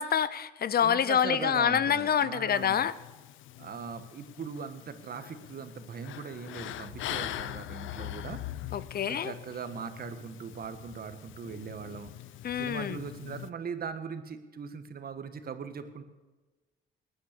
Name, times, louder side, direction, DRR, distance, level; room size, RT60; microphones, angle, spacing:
voice 1, 0.0-2.9 8.7-9.3 12.4-13.0, left 8 dB, 50° left, 17 dB, 0.8 m, -27 dB
voice 2, 0.8-2.9 3.6-8.4 9.1-12.1 12.5-16.0, right 6 dB, 50° right, 9 dB, 1.6 m, -40 dB
sound 1, 2.5-13.5, left 13 dB, 80° left, 0.6 m, -42 dB
19.5 x 9.5 x 6.8 m, 1.2 s
cardioid pair, 90°, 20 cm